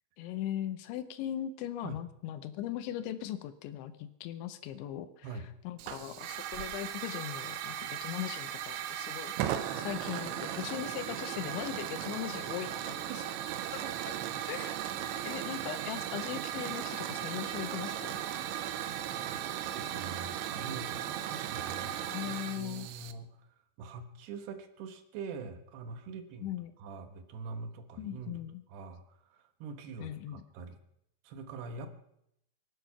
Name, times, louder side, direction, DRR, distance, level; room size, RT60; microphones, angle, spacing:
voice 1, 0.2-5.3 5.6-13.1 13.7-13.8 14.5-14.7 15.0-18.2 22.0-22.9 26.4-26.7 28.0-28.6 30.0-30.4, left 11 dB, 85° left, 12 dB, 3.1 m, -39 dB
Hiss / Fire, 5.8-23.1, right 11 dB, 85° right, 3.1 m, -37 dB
voice 2, 19.3-21.0 21.3-23.5 23.8-26.5 26.8-28.4 28.7-30.8 31.2-31.9, right 4 dB, 70° right, 7 dB, 3.1 m, -44 dB
24.5 x 9.2 x 5.7 m, 0.78 s
omnidirectional pair, 5.3 m